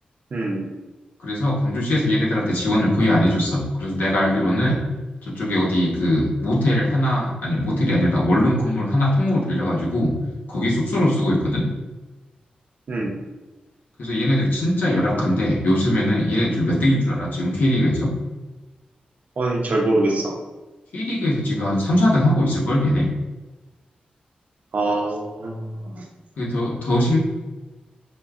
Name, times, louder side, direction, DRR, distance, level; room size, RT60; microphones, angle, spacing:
voice 1, 0.3-0.7 12.9-13.2 19.4-20.4 24.7-26.0, right 2 dB, 60° right, 0 dB, 0.6 m, -24 dB
voice 2, 1.2-4.8 5.2-10.1 10.5-11.6 14.0-18.1 20.9-23.1 26.4-27.2, left 1 dB, 75° left, -4 dB, 1.0 m, -20 dB
5.1 x 2.2 x 2.4 m, 1.2 s
wide cardioid pair, 115°, 3 cm